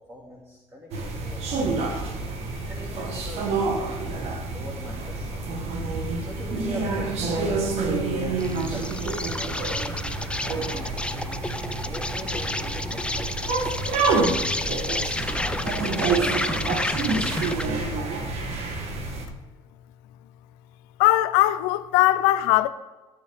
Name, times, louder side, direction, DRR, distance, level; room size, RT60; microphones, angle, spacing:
voice 1, 0.1-2.2 2.6-4.2 4.5-5.5 6.2-11.4 11.8-14.8 15.3-17.1, equal, 25° right, 2.4 m, -42 dB
sound 1, 0.9-19.3, right 3 dB, 65° right, 1.4 m, -28 dB
Insect, 8.4-17.8, left 2 dB, 10° left, 0.5 m, -31 dB
voice 2, 21.0-22.7, left 16 dB, 85° left, 0.5 m, -20 dB
13.0 x 7.1 x 3.5 m
supercardioid pair, 75°, 11 cm